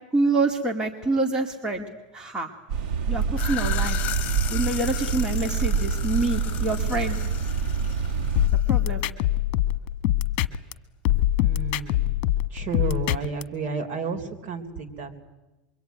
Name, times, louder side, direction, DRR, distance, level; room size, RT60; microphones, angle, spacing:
voice 1, 0.1-1.9 2.1-2.5 3.1-4.0 4.5-7.2 8.7-9.0, right 2 dB, 15° right, 3 dB, 2.3 m, -26 dB
sound 1, 2.7-8.5, right 5 dB, 65° right, 2.7 m, -26 dB
sound 2, 3.2-8.8, left 12 dB, 35° left, 2.2 m, -36 dB
sound 3, 8.4-10.7 11.0-13.4, left 14 dB, 50° left, 1.5 m, -23 dB
voice 2, 11.4-12.1 12.5-15.2, right 4 dB, 45° right, 4 dB, 3.7 m, -32 dB
26.0 x 23.0 x 9.5 m, 1.1 s
supercardioid pair, 135°, 5 cm